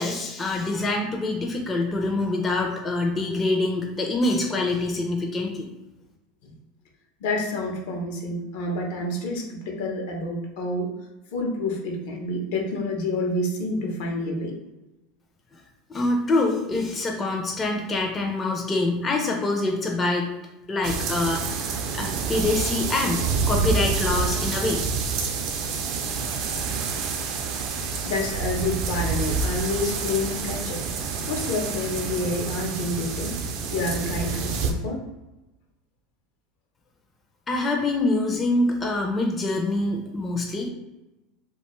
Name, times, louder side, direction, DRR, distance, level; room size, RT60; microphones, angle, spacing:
voice 1, 0.0-5.7 15.5-15.6 15.9-20.3 20.7-21.7 21.9-24.8 37.5-40.7, left 2 dB, 20° left, 1 dB, 0.4 m, -25 dB
voice 2, 7.2-10.9 11.3-14.6 25.6-26.0 28.0-33.4 33.7-35.0, left 2 dB, 75° left, 0 dB, 0.7 m, -28 dB
sound 1, 20.8-34.7, right 5 dB, 55° right, 0.4 m, -28 dB
2.4 x 2.2 x 3.0 m, 1.0 s
supercardioid pair, 125°, 0 cm